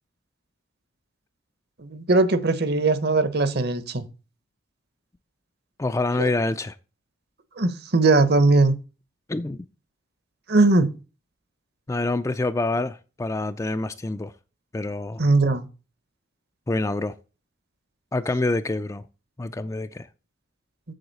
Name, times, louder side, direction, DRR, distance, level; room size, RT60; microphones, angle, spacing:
voice 1, 1.8-4.1 6.2-6.3 7.6-8.7 10.5-10.9 15.2-15.7, right 3 dB, 50° right, 0.9 m, -20 dB
voice 2, 5.8-6.7 9.3-9.7 11.9-14.3 14.7-15.2 16.7-17.1 18.1-19.0 19.4-20.1, left 2 dB, 15° left, 0.3 m, -26 dB
7.8 x 7.2 x 4.0 m
head